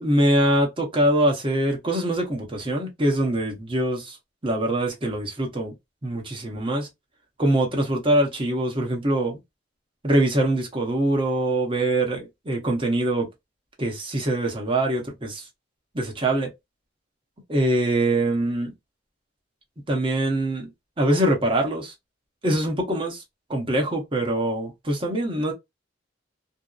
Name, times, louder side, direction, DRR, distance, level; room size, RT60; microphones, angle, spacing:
voice 1, 0.0-4.2 4.4-5.7 6.0-6.9 7.4-9.4 10.0-13.3 13.8-15.4 15.9-16.5 17.5-18.7 19.9-20.7 21.0-21.9 22.4-23.2 23.5-25.5, right 1 dB, 30° right, 0.9 m, -23 dB
2.7 x 2.0 x 2.3 m
head